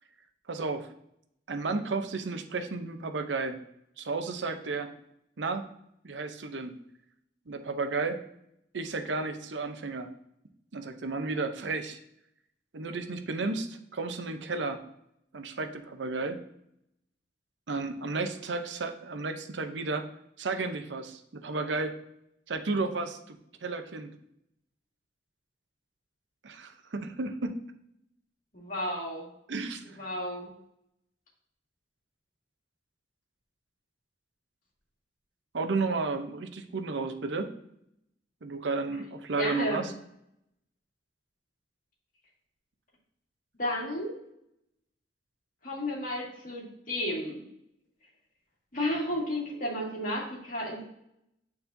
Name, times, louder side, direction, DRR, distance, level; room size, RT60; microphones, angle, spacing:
voice 1, 0.5-0.9 1.5-3.6 4.0-4.9 5.4-5.7 6.0-6.8 7.5-8.2 8.7-10.1 10.7-12.0 12.7-14.8 15.3-16.4 17.7-20.1 20.4-21.9 22.5-24.1 26.4-27.6 29.5-30.0 35.5-37.5 38.4-39.9, right 3 dB, 85° right, 7 dB, 0.7 m, -33 dB
voice 2, 28.5-29.3 30.0-30.5 39.4-39.8 43.6-44.1 45.6-47.4 48.7-50.8, left 1 dB, 50° left, -3 dB, 2.0 m, -32 dB
9.0 x 4.2 x 2.7 m, 0.77 s
head